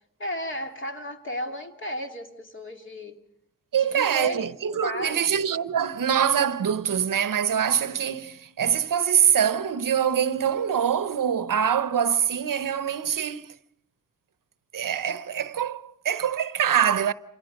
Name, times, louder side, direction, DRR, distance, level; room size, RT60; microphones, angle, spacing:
voice 1, 0.2-3.2 3.7-4.5 4.8-5.3, left 1 dB, 35° left, 2.6 m, -34 dB
voice 2, 3.7-13.5 14.7-17.1, right 8 dB, 75° right, 0.8 m, -24 dB
28.0 x 28.0 x 5.2 m
wide cardioid pair, 155°, 33 cm